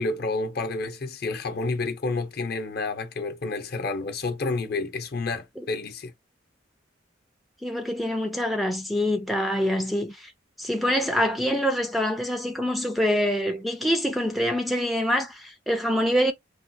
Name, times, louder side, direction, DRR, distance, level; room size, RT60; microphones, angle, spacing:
voice 1, 0.0-6.1, left 3 dB, 55° left, 0.7 m, -29 dB
voice 2, 7.6-10.3 10.6-16.3, equal, ahead, 0.3 m, -25 dB
3.5 x 2.3 x 2.6 m
head